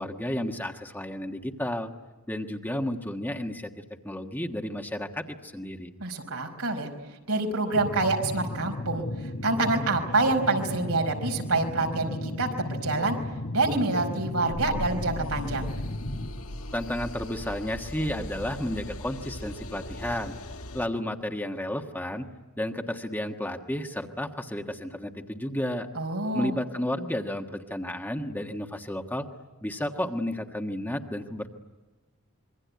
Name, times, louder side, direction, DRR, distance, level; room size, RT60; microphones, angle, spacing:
voice 1, 0.0-1.9 2.3-3.7 4.0-5.9 16.7-20.3 20.7-22.3 22.6-25.9 26.3-29.3 29.6-31.5, left 1 dB, 10° left, 4 dB, 1.4 m, -32 dB
voice 2, 6.0-6.9 7.3-13.2 13.5-15.7 25.9-26.6, right 3 dB, 85° right, 3 dB, 4.9 m, -27 dB
sound 1, 7.7-16.3, left 1 dB, 50° left, 1.6 m, -35 dB
sound 2, 14.5-20.9, left 1 dB, 80° left, 1.8 m, -38 dB
26.5 x 23.0 x 9.5 m, 1.2 s
head